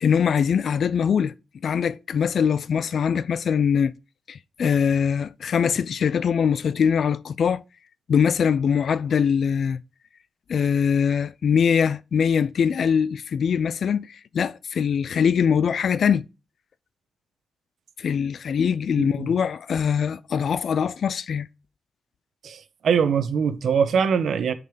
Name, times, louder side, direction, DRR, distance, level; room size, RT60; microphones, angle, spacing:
voice 1, 0.0-1.3 1.6-3.9 4.3-7.6 8.1-9.8 10.5-16.3 18.0-21.5, left 7 dB, 55° left, 0.4 m, -22 dB
voice 2, 19.0-19.3 22.4-24.5, right 6 dB, 65° right, 0.9 m, -23 dB
6.7 x 6.6 x 5.0 m
wide cardioid pair, 155°, 0 cm